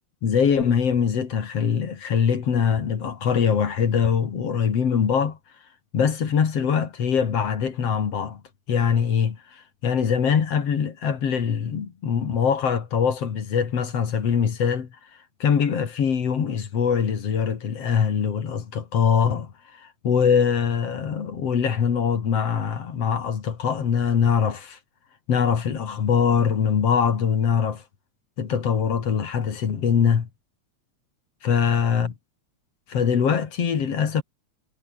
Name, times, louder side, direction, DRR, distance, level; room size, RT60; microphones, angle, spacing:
voice 1, 0.2-5.4 5.9-8.4 8.7-14.9 15.4-24.8 25.3-27.8 28.4-30.3 31.4-32.1 32.9-34.2, left 7 dB, 55° left, 3.2 m, -23 dB
omnidirectional pair, 3.3 m